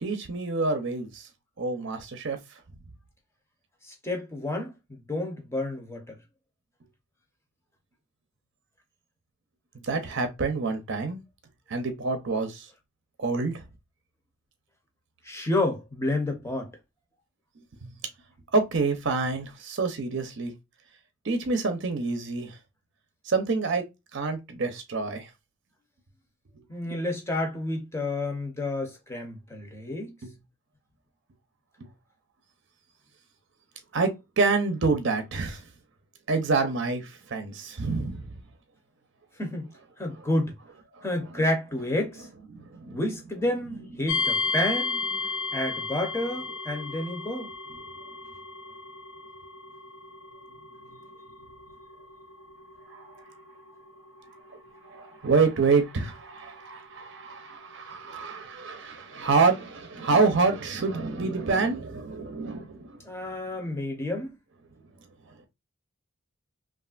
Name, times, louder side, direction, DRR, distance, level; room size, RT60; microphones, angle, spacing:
voice 1, 0.0-1.2 1.6-2.4 9.9-11.2 11.7-12.7 13.2-13.6 17.8-17.9 18.5-20.5 21.2-22.6 23.3-23.8 24.1-25.3 26.9-27.0 30.2-30.3 33.9-35.6 36.3-38.2 42.5-43.0 52.9-53.0 54.9-63.0, right 4 dB, 55° right, 0.6 m, -27 dB
voice 2, 3.8-6.1 15.2-16.7 26.7-30.1 39.4-39.7 40.0-40.5 41.0-42.3 42.9-45.0 45.5-47.5 63.1-64.3, left 1 dB, 10° left, 0.7 m, -30 dB
sound 1, 44.1-58.9, left 4 dB, 60° left, 0.6 m, -35 dB
3.2 x 2.4 x 2.4 m
head